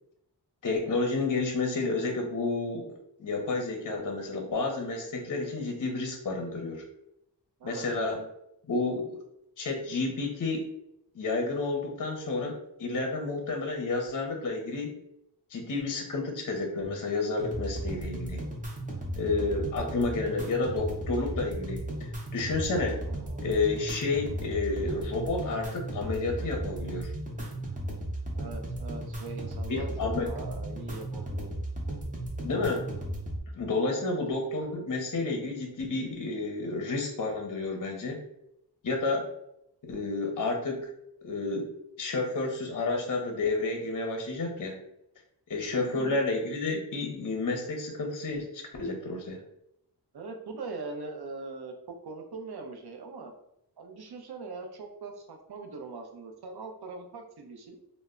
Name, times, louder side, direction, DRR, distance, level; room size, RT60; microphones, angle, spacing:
voice 1, 0.6-2.9 3.2-6.8 7.6-8.2 8.7-9.2 9.6-10.7 11.1-15.0 15.5-18.4 19.2-23.0 23.4-27.1 29.7-30.3 32.4-32.9 33.5-38.2 38.8-39.3 39.8-40.9 41.2-41.7 42.0-44.8 45.5-49.4, left 3 dB, 50° left, 2 dB, 0.6 m, -30 dB
sound 1, 17.4-33.4, right 1 dB, 20° right, 0.6 m, -35 dB
voice 2, 23.1-23.4 28.3-31.5 34.0-34.2 45.7-46.2 50.1-53.3 53.8-57.8, right 3 dB, 65° right, 4 dB, 0.6 m, -41 dB
2.0 x 2.0 x 3.5 m, 0.80 s
wide cardioid pair, 85°, 42 cm